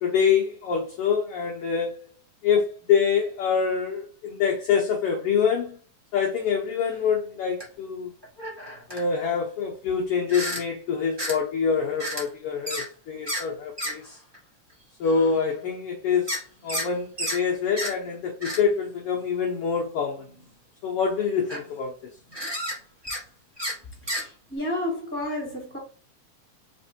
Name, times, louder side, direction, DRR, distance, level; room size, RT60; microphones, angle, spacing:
voice 1, 0.0-2.0 2.4-5.8 6.1-8.1 8.9-14.2 15.0-16.4 16.6-20.2 20.8-21.9, left 6 dB, 75° left, 1.4 m, -25 dB
sound 1, 6.9-7.0 7.6-7.7 8.2-9.0 10.3-10.6 11.2-11.4 12.0-12.3 12.7-12.9 13.3-13.4 13.8-13.9 14.3-14.4 15.0-15.4 16.3-16.9 17.2-17.4 17.8-17.9 18.4-18.6 19.2-19.3 20.2-20.5 21.1-21.2 21.4-21.7 22.3-22.8 23.0-23.2 23.6-23.8 24.1-24.2, equal, 25° right, 0.5 m, -31 dB
voice 2, 24.0-25.8, left 1 dB, 5° left, 2.0 m, -31 dB
4.3 x 4.1 x 2.7 m
omnidirectional pair, 3.5 m